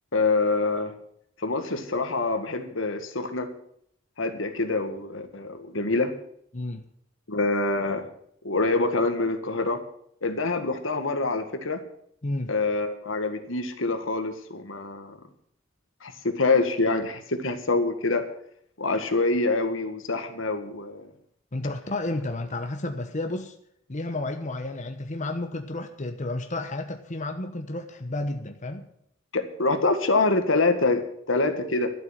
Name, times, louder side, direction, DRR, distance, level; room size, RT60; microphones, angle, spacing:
voice 1, 0.1-0.9 1.4-3.5 4.2-6.1 7.3-8.1 8.4-9.8 10.2-11.8 12.5-15.2 16.0-18.2 18.8-21.1 29.3-31.0 31.3-31.9, left 3 dB, 80° left, 7 dB, 1.8 m, -25 dB
voice 2, 12.2-12.5 21.5-23.5 23.9-28.9, left 2 dB, 40° left, 5 dB, 1.1 m, -31 dB
12.5 x 7.8 x 9.1 m, 0.68 s
head